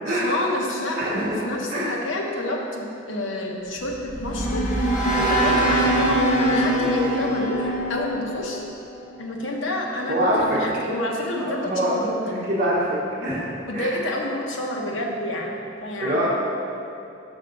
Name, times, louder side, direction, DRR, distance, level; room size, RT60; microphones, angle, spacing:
voice 1, 0.1-4.7 5.1-8.6 9.2-12.7 13.6-15.5 15.8-16.3, left 1 dB, 70° left, -1 dB, 0.9 m, -28 dB
voice 2, 0.9-1.4 1.7-1.9 5.4-5.6 10.1-10.6 11.4-13.5 13.7-13.9 16.0-16.3, right 1 dB, 45° right, -7 dB, 0.9 m, -25 dB
sound 1, 3.8-9.0, right 1 dB, 40° left, 0.8 m, -23 dB
6.2 x 4.4 x 5.2 m, 2.6 s
head